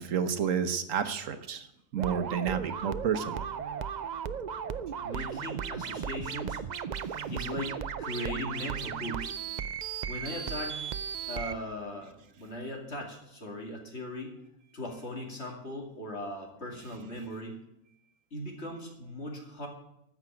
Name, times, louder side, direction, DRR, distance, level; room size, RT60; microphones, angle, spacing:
voice 1, 0.0-1.7 1.9-3.4 7.0-7.2, right 7 dB, 75° right, 10 dB, 1.3 m, -30 dB
sound 1, 2.0-11.6, right 7 dB, 55° right, 0.5 m, -36 dB
voice 2, 5.0-6.6 7.3-9.4 10.1-10.8 11.3-14.4 14.7-17.6 18.3-19.7, left 1 dB, 50° left, 1 dB, 2.8 m, -38 dB
14.0 x 6.0 x 9.0 m, 0.81 s
omnidirectional pair, 1.4 m